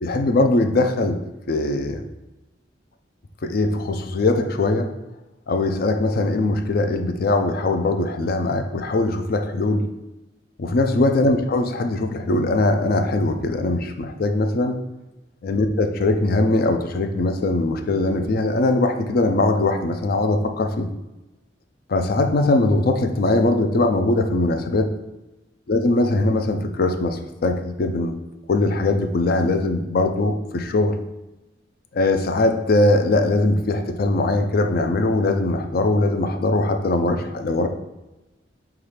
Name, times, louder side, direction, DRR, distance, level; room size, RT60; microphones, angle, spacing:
voice 1, 0.0-1.2 1.5-2.0 3.4-4.9 5.5-9.9 10.6-14.8 15.4-20.9 21.9-24.9 25.7-28.1 28.5-30.9 31.9-37.7, left 2 dB, 55° left, 6 dB, 0.4 m, -21 dB
5.7 x 2.4 x 3.3 m, 1.0 s
head